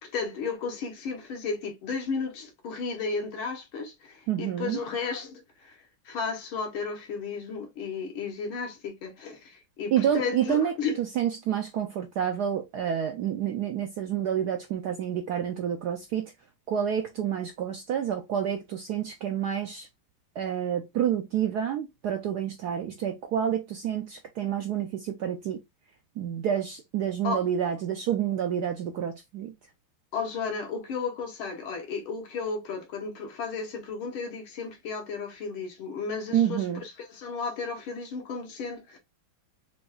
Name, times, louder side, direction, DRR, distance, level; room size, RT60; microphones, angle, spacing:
voice 1, 0.0-5.8 6.1-11.0 27.2-27.4 30.1-39.0, left 4 dB, 80° left, 1.9 m, -34 dB
voice 2, 4.3-4.8 9.9-16.3 16.7-19.9 20.4-25.6 26.2-29.5 36.3-36.8, right 9 dB, 75° right, 0.9 m, -29 dB
5.9 x 2.3 x 2.4 m
omnidirectional pair, 2.3 m